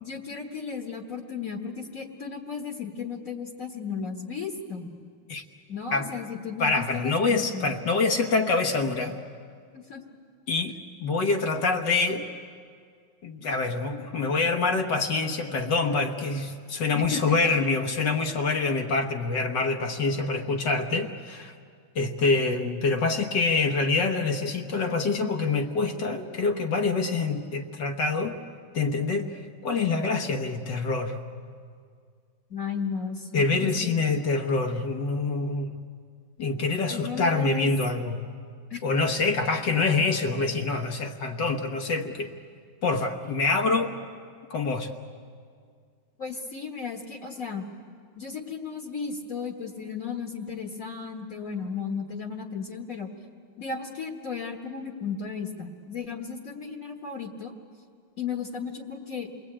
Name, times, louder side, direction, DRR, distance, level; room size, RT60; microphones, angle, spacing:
voice 1, 0.0-5.0 5.7-7.7 9.7-10.0 16.9-17.4 32.5-34.0 36.9-37.7 38.7-38.8 46.2-47.7 48.2-53.1 53.6-57.5 58.2-59.3, left 5 dB, 45° left, 2 dB, 1.7 m, -35 dB
voice 2, 6.6-9.2 10.5-10.7 11.0-12.3 13.2-21.5 22.0-28.4 28.7-31.2 33.3-35.7 36.4-38.2 38.8-42.3 42.8-43.9 44.5-44.9, left 3 dB, 65° left, 3 dB, 1.8 m, -26 dB
28.5 x 20.5 x 8.7 m, 2.1 s
omnidirectional pair, 2.2 m